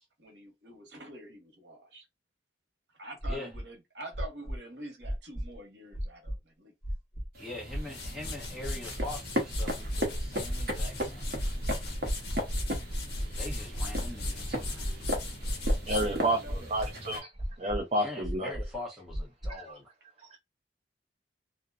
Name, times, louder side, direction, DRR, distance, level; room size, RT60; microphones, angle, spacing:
voice 1, 0.2-2.0 2.9-6.7 16.0-16.7, right 1 dB, 80° right, 1.0 m, -46 dB
sound 1, 3.2-3.6 4.1-4.6 5.0-5.6 5.9-6.4 6.8-7.3 7.7-8.1 8.6-9.1 9.5-10.1 10.4-10.9 11.3-11.9 12.2-12.7 13.1-14.3 14.8-15.2 15.7-16.2 16.5-16.9 17.3-17.8 18.2-18.8 19.1-19.5, equal, 40° left, 1.1 m, -34 dB
sound 2, 7.3-17.2, equal, 55° right, 0.8 m, -37 dB
voice 2, 7.4-11.3 13.4-14.9 18.0-19.9, left 2 dB, ahead, 1.0 m, -42 dB
sound 3, 7.6-17.0, left 1 dB, 65° left, 0.8 m, -37 dB
voice 3, 15.9-16.4 16.7-17.3 17.6-18.5 19.6-19.7, right 1 dB, 35° right, 0.4 m, -29 dB
2.6 x 2.1 x 2.4 m
head